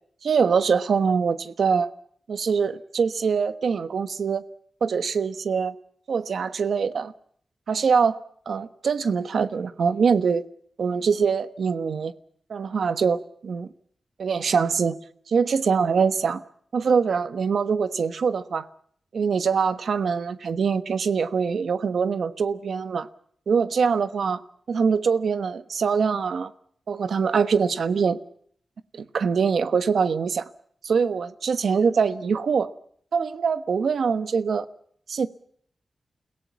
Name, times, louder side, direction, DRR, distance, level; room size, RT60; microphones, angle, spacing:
voice 1, 0.2-1.9 2.3-4.4 4.8-5.7 6.1-7.1 7.7-8.1 8.5-10.4 10.8-12.1 12.5-13.7 14.2-15.0 15.3-16.4 16.7-18.6 19.1-23.1 23.5-24.4 24.7-26.5 26.9-28.2 28.9-30.4 30.8-32.7 33.1-34.7 35.1-35.3, right 6 dB, 75° right, 1.2 m, -23 dB
30.0 x 17.0 x 7.1 m
wide cardioid pair, 155°, 0 cm